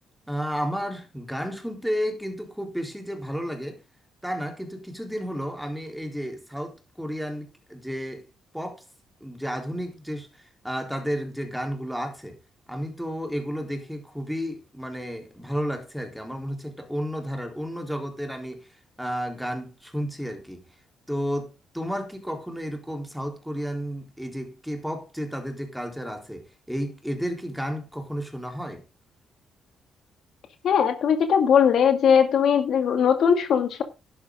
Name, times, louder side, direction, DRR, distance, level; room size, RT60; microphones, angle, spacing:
voice 1, 0.3-3.8 4.2-8.3 8.5-8.8 9.2-12.4 12.7-20.6 21.1-28.8, equal, ahead, 3.9 m, -32 dB
voice 2, 30.6-33.8, left 7 dB, 65° left, 2.4 m, -20 dB
11.5 x 11.0 x 3.8 m
cardioid pair, 90°, 0 cm